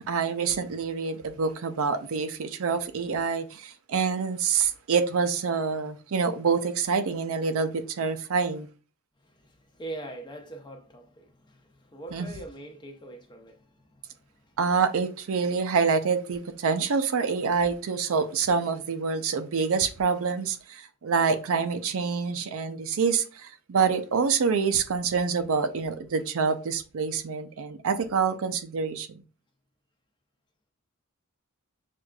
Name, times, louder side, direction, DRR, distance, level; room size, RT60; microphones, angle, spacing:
voice 1, 0.0-8.7 12.1-12.3 14.6-29.2, right 5 dB, 70° right, 0.5 m, -26 dB
voice 2, 9.2-14.6, right 2 dB, 20° left, 0.7 m, -43 dB
6.2 x 2.4 x 2.3 m
head